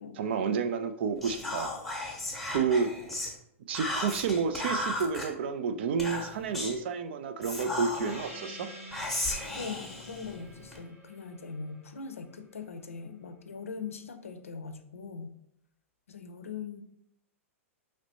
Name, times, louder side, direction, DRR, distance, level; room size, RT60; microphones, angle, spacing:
voice 1, 0.2-1.7 2.5-2.9 3.7-8.7, right 6 dB, 50° right, 10 dB, 0.4 m, -30 dB
Whispering, 1.2-3.3 3.7-5.3 6.0-6.8 7.4-8.3 8.9-10.8, left 2 dB, ahead, 0.9 m, -35 dB
Gong, 8.0-13.0, equal, 70° right, 1.3 m, -48 dB
voice 2, 9.5-15.3 16.1-16.8, left 5 dB, 70° left, 8 dB, 0.5 m, -41 dB
4.9 x 3.1 x 2.8 m, 0.72 s
figure-of-eight pair, 100°, 8 cm